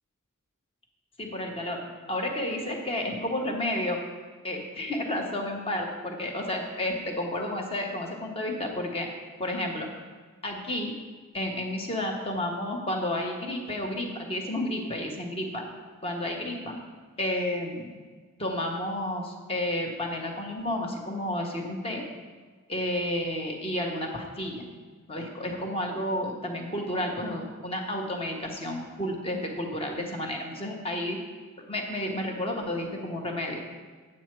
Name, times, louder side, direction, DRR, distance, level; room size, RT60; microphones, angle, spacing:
voice 1, 1.2-1.8 2.1-4.0 4.4-9.1 9.4-9.9 10.4-10.9 11.3-15.6 16.0-16.8 17.2-17.9 18.4-22.0 22.7-24.7 25.1-31.2 31.7-33.6, left 1 dB, 25° left, 2 dB, 1.2 m, -31 dB
9.0 x 7.5 x 4.6 m, 1.5 s
head